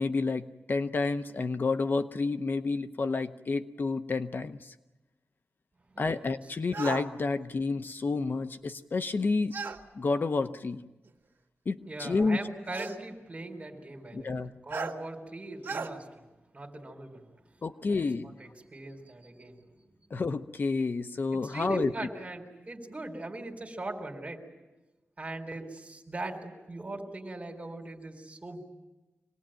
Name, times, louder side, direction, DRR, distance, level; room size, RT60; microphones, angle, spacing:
voice 1, 0.0-4.7 6.0-9.6 9.9-10.8 11.7-12.4 14.1-14.5 17.6-18.3 20.1-21.9, left 3 dB, 50° left, 9 dB, 0.8 m, -30 dB
voice 2, 5.9-6.3 11.9-14.4 14.7-16.1 16.5-17.2 17.5-19.6 21.3-24.4 25.2-28.7, right 2 dB, 30° right, 3 dB, 4.0 m, -40 dB
sound 1, 6.7-7.1 9.5-9.8 11.1-11.2 12.7-13.0 14.7-15.0 15.6-15.9, right 4 dB, 65° right, 2.0 m, -35 dB
25.5 x 19.5 x 9.0 m, 1.1 s
wide cardioid pair, 135°, 4 cm